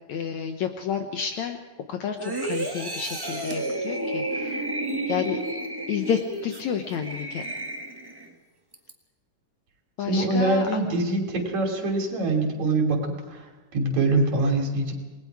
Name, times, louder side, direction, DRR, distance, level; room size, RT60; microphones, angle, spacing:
voice 1, 0.1-1.6 1.9-2.2 2.4-4.6 5.1-5.4 5.9-7.4 10.0-10.7, left 8 dB, 70° left, 5 dB, 2.2 m, -30 dB
sound 1, 2.2-8.3 8.7-8.9, right 1 dB, 15° right, 0.8 m, -31 dB
voice 2, 10.0-14.9, right 2 dB, 60° right, 3 dB, 4.2 m, -24 dB
28.5 x 20.5 x 4.8 m, 1.2 s
omnidirectional pair, 3.7 m